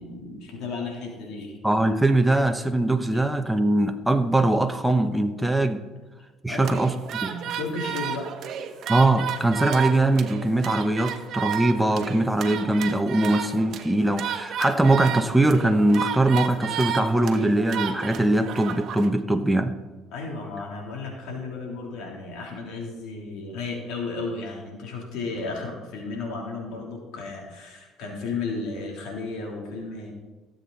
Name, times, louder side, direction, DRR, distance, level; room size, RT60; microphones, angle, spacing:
voice 1, 0.0-1.6 6.5-6.8 7.2-8.3 20.1-30.1, left 3 dB, 75° left, -1 dB, 3.5 m, -34 dB
voice 2, 1.6-5.8 6.4-6.9 7.2-7.3 8.9-19.7, right 2 dB, 5° right, 6 dB, 1.0 m, -22 dB
sound 1, 6.6-19.1, right 8 dB, 60° right, 1.2 m, -32 dB
17.0 x 7.9 x 4.2 m, 1.3 s
supercardioid pair, 85°, 0 cm